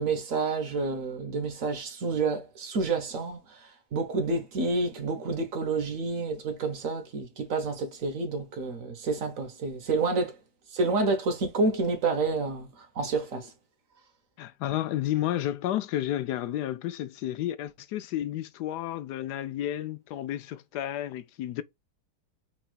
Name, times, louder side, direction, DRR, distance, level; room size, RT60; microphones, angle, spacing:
voice 1, 0.0-3.6 3.9-10.3 10.7-12.7 12.9-13.5, right 3 dB, 55° right, 1.4 m, -29 dB
voice 2, 14.4-21.6, left 12 dB, 80° left, 1.2 m, -31 dB
4.4 x 4.2 x 2.3 m
omnidirectional pair, 1.8 m